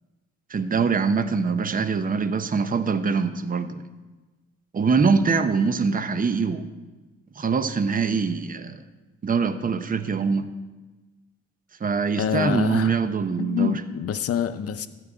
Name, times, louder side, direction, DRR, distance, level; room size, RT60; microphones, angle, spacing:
voice 1, 0.5-3.8 4.7-6.7 7.4-8.8 9.2-10.5 11.8-13.8, right 5 dB, 30° right, 11 dB, 0.7 m, -23 dB
voice 2, 12.2-13.0 13.4-14.9, left 8 dB, 50° left, 11 dB, 0.7 m, -26 dB
13.0 x 4.7 x 8.8 m, 1.2 s
cardioid pair, 90°, 30 cm